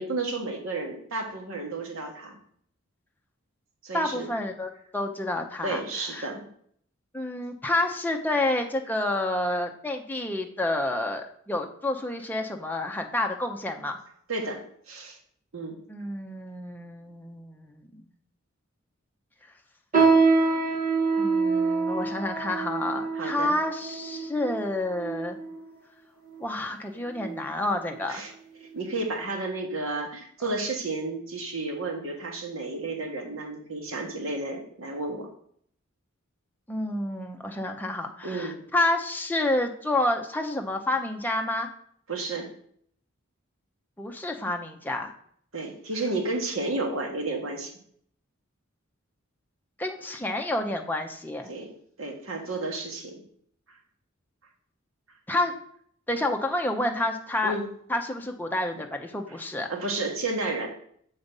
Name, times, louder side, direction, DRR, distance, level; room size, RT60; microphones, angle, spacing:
voice 1, 0.0-2.4 3.8-4.3 5.6-6.5 14.3-14.6 14.9-15.2 15.5-15.8 23.1-23.6 28.1-28.3 28.6-35.3 38.2-38.6 42.1-42.5 45.5-47.7 51.5-51.7 52.0-53.2 57.4-57.6 59.3-59.4 59.7-60.7, right 2 dB, 75° right, 2 dB, 1.4 m, -32 dB
voice 2, 3.9-5.8 6.1-6.3 7.1-14.0 15.9-18.0 21.2-25.4 26.4-28.2 36.7-41.7 44.0-45.1 49.8-51.5 55.3-55.5 56.1-57.5 57.9-59.7, left 1 dB, 10° left, 3 dB, 0.7 m, -29 dB
sound 1, 19.9-25.6 26.3-26.4 27.1-27.4 27.8-28.0 28.7-28.8, right 4 dB, 40° right, 1.6 m, -25 dB
6.8 x 4.0 x 5.3 m, 0.63 s
head